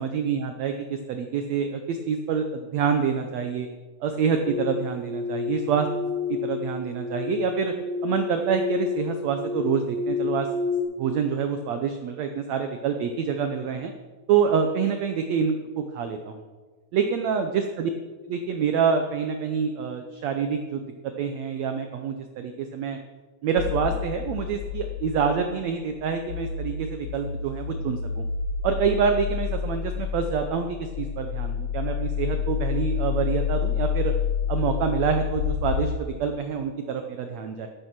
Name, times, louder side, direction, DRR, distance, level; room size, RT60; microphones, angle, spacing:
voice 1, 0.0-3.7 4.0-5.9 6.3-7.7 8.0-10.5 11.0-13.9 14.3-16.4 16.9-17.9 18.3-20.8 21.2-23.0 23.4-28.2 28.6-34.1 34.5-37.7, right 6 dB, 75° right, 6 dB, 1.6 m, -26 dB
sound 1, 4.4-10.8, left 5 dB, 40° right, 1.9 m, -30 dB
sound 2, 23.6-36.0, left 7 dB, 80° left, 1.7 m, -29 dB
13.5 x 8.3 x 6.0 m, 1.4 s
omnidirectional pair, 4.0 m